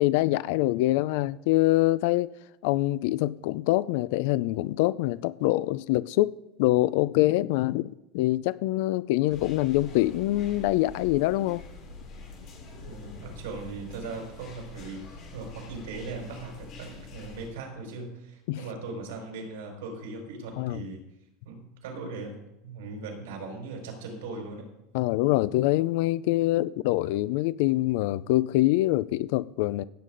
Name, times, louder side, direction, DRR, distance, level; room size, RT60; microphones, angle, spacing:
voice 1, 0.0-2.3 2.6-6.3 6.6-11.6 18.5-18.6 20.6-20.8 24.9-29.8, left 17 dB, 60° left, 0.3 m, -25 dB
sound 1, 9.3-17.5, left 3 dB, 40° left, 4.1 m, -45 dB
voice 2, 12.8-21.0 21.4-22.3 22.6-24.7, right 3 dB, 80° right, 4.7 m, -39 dB
16.5 x 8.3 x 3.9 m
supercardioid pair, 170°, 0 cm